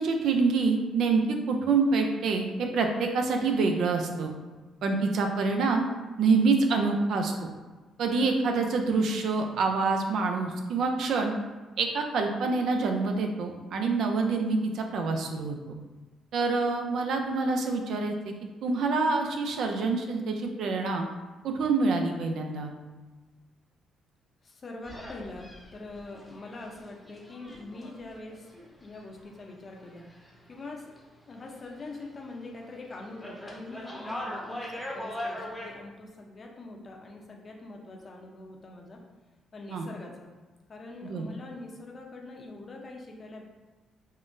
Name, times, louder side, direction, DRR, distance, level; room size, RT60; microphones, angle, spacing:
voice 1, 0.0-4.3 4.8-5.8 6.2-7.3 8.0-11.3 11.8-15.8 16.3-18.3 18.6-21.1 21.4-22.7 39.7-39.8 41.0-41.3, right 4 dB, 70° right, 4 dB, 0.4 m, -26 dB
voice 2, 24.4-25.5 25.7-28.5 28.8-30.1 30.5-30.8 31.3-39.0 39.5-40.3 40.7-43.4, left 2 dB, 40° left, 0 dB, 0.6 m, -43 dB
sound 1, 24.8-30.6 30.9-32.2 32.5-35.7, left 1 dB, 10° left, 0.7 m, -41 dB
3.6 x 2.1 x 2.5 m, 1.3 s
cardioid pair, 75°, 0 cm